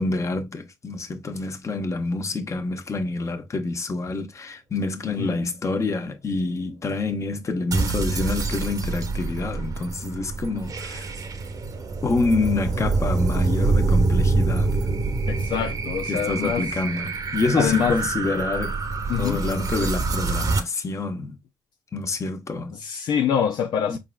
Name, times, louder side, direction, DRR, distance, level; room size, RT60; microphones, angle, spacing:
voice 1, 0.0-11.1 12.0-14.8 16.0-18.8 19.2-21.3 21.9-22.8 23.9-24.0, left 3 dB, 40° left, 1.1 m, -27 dB
voice 2, 5.0-5.4 15.3-16.7 17.6-18.0 19.1-19.4 22.8-24.0, left 8 dB, 75° left, 0.5 m, -25 dB
sound 1, 7.7-20.6, right 3 dB, 55° right, 1.1 m, -25 dB
4.9 x 3.8 x 2.3 m
supercardioid pair, 60°, 7 cm